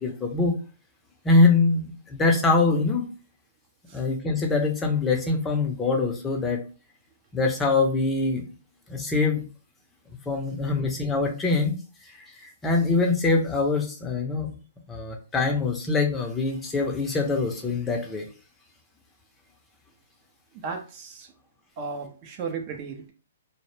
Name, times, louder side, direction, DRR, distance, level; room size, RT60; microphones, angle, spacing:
voice 1, 0.0-0.5 1.2-3.1 3.9-6.6 7.3-8.4 8.9-9.4 10.3-11.7 12.1-14.5 14.9-18.3, left 3 dB, 15° left, 2 dB, 0.5 m, -23 dB
voice 2, 20.6-21.3 21.8-23.1, right 5 dB, 35° right, 4 dB, 0.4 m, -35 dB
2.1 x 2.0 x 3.1 m, 0.36 s
hypercardioid pair, 135°, 0 cm